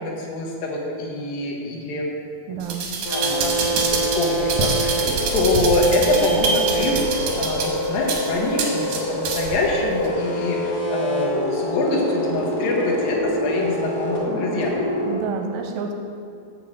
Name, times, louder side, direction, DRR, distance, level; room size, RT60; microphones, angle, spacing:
voice 1, 0.0-2.1 3.1-14.7, left 2 dB, 75° left, -2 dB, 2.8 m, -25 dB
voice 2, 2.5-2.9 15.1-15.9, right 5 dB, 85° right, 3 dB, 2.4 m, -29 dB
sound 1, 2.6-9.6 10.0-10.1, right 4 dB, 70° right, 2.4 m, -25 dB
sound 2, 3.0-15.2, right 1 dB, 30° left, 1.6 m, -26 dB
6.9 x 5.5 x 7.4 m, 2.4 s
omnidirectional pair, 4.4 m